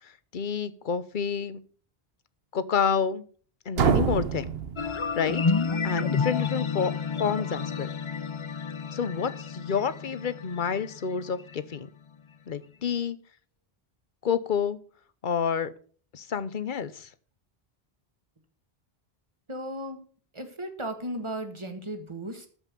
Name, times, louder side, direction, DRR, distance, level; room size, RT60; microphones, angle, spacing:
voice 1, 0.0-1.6 2.5-3.2 3.7-4.5 5.1-5.4 5.8-6.9 7.2-7.9 8.9-11.9 12.5-13.2 14.2-14.8 15.2-15.7 16.1-17.1, left 6 dB, 55° left, 14 dB, 1.0 m, -29 dB
sound 1, 3.7-5.6, right 7 dB, 75° right, 1.1 m, -27 dB
sound 2, 4.8-11.8, left 5 dB, 40° left, 0.5 m, -30 dB
voice 2, 19.5-20.0 20.3-22.5, right 1 dB, 30° right, 7 dB, 1.8 m, -35 dB
13.5 x 5.6 x 6.8 m, 0.44 s
omnidirectional pair, 1.0 m